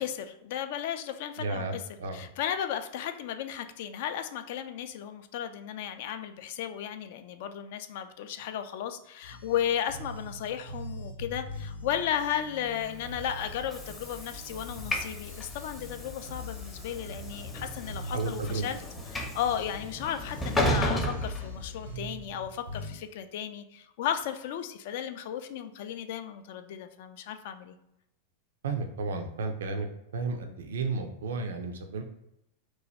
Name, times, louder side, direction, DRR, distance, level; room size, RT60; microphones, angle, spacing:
voice 1, 0.0-1.8 2.1-18.8 19.1-27.8, left 9 dB, 50° left, 9 dB, 0.3 m, -34 dB
voice 2, 1.4-2.2 18.1-18.7 28.6-29.9 30.1-32.0, right 3 dB, 60° right, 6 dB, 0.4 m, -32 dB
sound 1, 9.2-23.0, left 1 dB, 85° left, 0.7 m, -43 dB
Train / Sliding door, 12.8-22.1, equal, 15° left, 0.6 m, -34 dB
3.0 x 2.2 x 4.1 m, 0.83 s
figure-of-eight pair, 90°, 0 cm